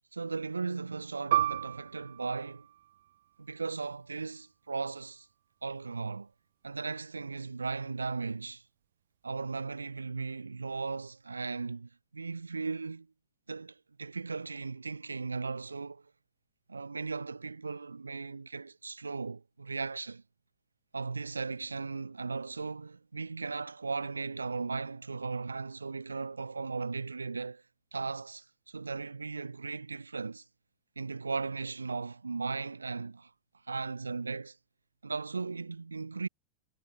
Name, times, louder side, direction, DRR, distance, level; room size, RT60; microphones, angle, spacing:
voice 1, 0.1-2.7 3.4-5.3 5.6-6.3 6.6-8.6 9.2-13.1 13.5-16.1 16.7-20.2 20.9-27.6 27.9-30.4 30.9-33.3 33.7-34.6 35.0-36.3, right 4 dB, 80° right, 1.4 m, -37 dB
Piano, 1.3-6.3 6.7-6.8 7.6-8.0, right 13 dB, 60° right, 0.6 m, -35 dB
figure-of-eight pair, 90°, 0 cm